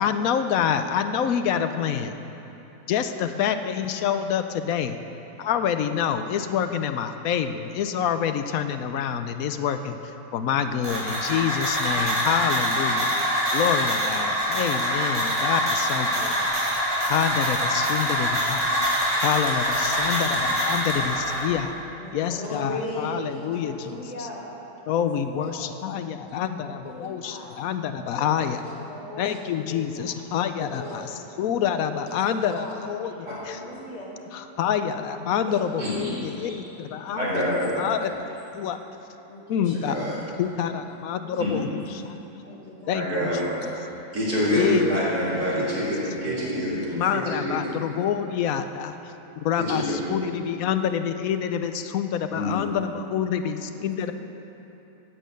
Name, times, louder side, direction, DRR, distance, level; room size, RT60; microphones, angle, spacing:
voice 1, 0.0-2.1 2.9-5.0 5.4-10.0 10.3-13.1 13.5-16.5 17.1-18.7 19.2-21.7 22.1-24.3 24.9-28.6 29.2-31.1 31.4-33.6 34.3-38.1 38.5-38.8 39.5-40.0 40.4-42.2 42.9-43.5 44.5-45.8 46.9-54.1, left 8 dB, 75° left, 9 dB, 1.0 m, -27 dB
sound 1, 10.8-21.5, equal, 20° right, 2.6 m, -25 dB
voice 2, 22.0-24.4 24.9-25.1 25.3-25.8 26.9-27.6 28.1-29.4 29.7-30.1 30.3-31.1 32.0-32.7 33.2-34.1 35.4-35.6 36.0-36.5 37.1-38.0 39.3-39.8 41.2-41.6 42.4-43.5 46.3-46.5 46.8-47.3 53.4-53.5 53.8-54.1, left 1 dB, 50° left, -4 dB, 2.2 m, -38 dB
voice 3, 35.8-36.1 37.1-37.7 39.7-40.1 41.4-41.5 42.9-43.4 44.1-46.9 47.1-47.7 49.6-50.1 52.3-52.6, equal, 80° right, -8 dB, 3.9 m, -26 dB
9.2 x 8.4 x 8.0 m, 3.0 s
omnidirectional pair, 1.6 m